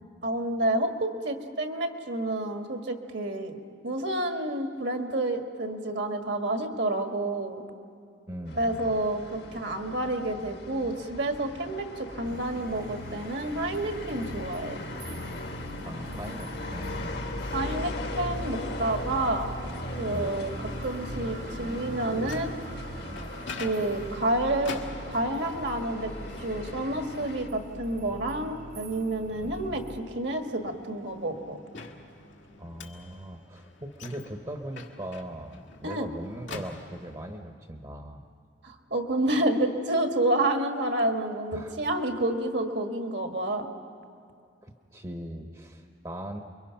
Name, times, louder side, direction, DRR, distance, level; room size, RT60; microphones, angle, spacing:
voice 1, 0.2-3.6 3.8-7.6 8.5-14.8 17.5-19.5 20.0-20.5 20.8-22.5 23.6-26.1 26.4-31.6 35.8-36.1 38.6-43.7, right 1 dB, 60° right, 4 dB, 1.7 m, -29 dB
voice 2, 8.3-8.9 15.8-17.3 20.1-20.3 29.4-29.6 32.6-38.3 41.5-41.8 44.6-46.4, right 1 dB, 25° right, 4 dB, 1.0 m, -40 dB
sound 1, 8.5-27.5, left 2 dB, 55° left, 1.4 m, -39 dB
sound 2, 12.2-30.0, right 1 dB, 45° right, 0.9 m, -41 dB
Microwave oven, 22.0-37.4, left 4 dB, 75° left, 1.8 m, -47 dB
29.5 x 23.0 x 5.8 m, 2.3 s
head